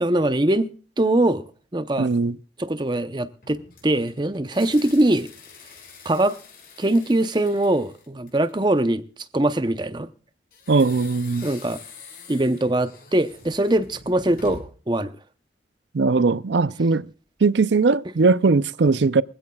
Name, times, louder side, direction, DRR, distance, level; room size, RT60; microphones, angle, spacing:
voice 1, 0.0-0.7 1.0-1.5 1.7-2.1 2.6-5.3 6.0-6.4 6.8-9.0 9.3-10.1 11.4-11.8 12.3-15.1, right 1 dB, 25° right, 0.8 m, -22 dB
voice 2, 2.0-2.4 10.7-11.5 15.9-17.1 17.4-19.2, right 4 dB, 75° right, 0.5 m, -19 dB
sound 1, 3.4-8.8 10.5-14.9, left 4 dB, 50° left, 6.0 m, -46 dB
23.5 x 16.0 x 2.3 m
head